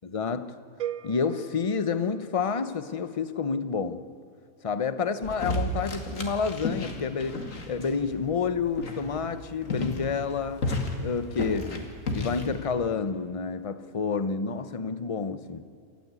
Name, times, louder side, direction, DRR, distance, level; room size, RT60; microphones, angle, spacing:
voice 1, 0.0-0.5 1.0-4.0 4.6-10.6 11.0-15.6, left 5 dB, 30° left, 12 dB, 0.6 m, -29 dB
sound 1, 0.8-2.9, right 10 dB, 65° right, 1.2 m, -39 dB
sound 2, 5.2-12.7, left 2 dB, 60° left, 2.4 m, -33 dB
28.0 x 13.5 x 8.3 m, 2.5 s
omnidirectional pair, 1.6 m